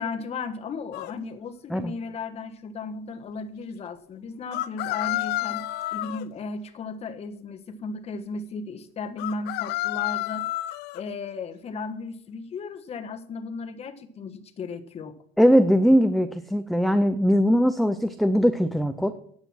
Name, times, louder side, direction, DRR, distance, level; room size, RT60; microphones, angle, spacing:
voice 1, 0.0-5.6 5.9-10.5 10.9-15.2, left 4 dB, 35° left, 9 dB, 1.2 m, -35 dB
sound 1, 0.9-1.1 4.5-6.2 9.2-11.0, left 17 dB, 70° left, 0.5 m, -30 dB
voice 2, 15.4-19.1, equal, ahead, 9 dB, 0.5 m, -20 dB
10.0 x 7.9 x 6.0 m, 0.63 s
cardioid pair, 130°, 17 cm